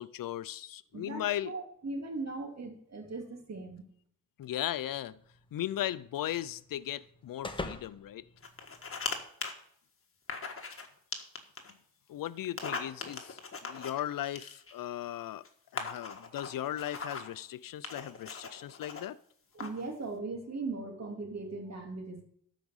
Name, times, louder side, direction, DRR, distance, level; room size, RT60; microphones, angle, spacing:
voice 1, 0.0-1.5 4.4-5.2 5.5-8.3 12.1-15.5 15.7-19.2, left 12 dB, 60° left, 0.6 m, -37 dB
voice 2, 0.9-3.8 19.5-22.2, right 3 dB, 45° right, 2.7 m, -39 dB
sound 1, 4.8-9.3, left 2 dB, 15° left, 1.1 m, -46 dB
sound 2, 8.4-9.2 9.4-9.5 10.3-10.9 11.1-11.7 12.4-14.8 15.5-15.6 15.8-17.3 17.8-19.0 19.6-19.9, left 4 dB, 35° left, 1.7 m, -39 dB
12.5 x 5.1 x 7.2 m
cardioid pair, 70°, 37 cm